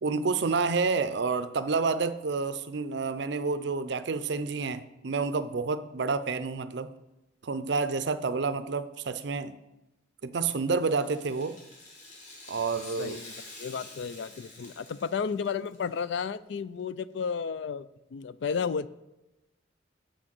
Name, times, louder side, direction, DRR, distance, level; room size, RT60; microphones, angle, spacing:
voice 1, 0.0-6.9 7.4-9.5 10.2-11.6 12.5-13.2, right 4 dB, 60° right, 0.5 m, -29 dB
Rattle (instrument), 10.7-16.0 16.3-16.4 17.2-17.3, left 2 dB, 40° left, 2.5 m, -48 dB
voice 2, 13.0-13.3 13.6-17.9 18.1-18.9, left 6 dB, 60° left, 0.3 m, -32 dB
8.0 x 6.2 x 6.0 m
head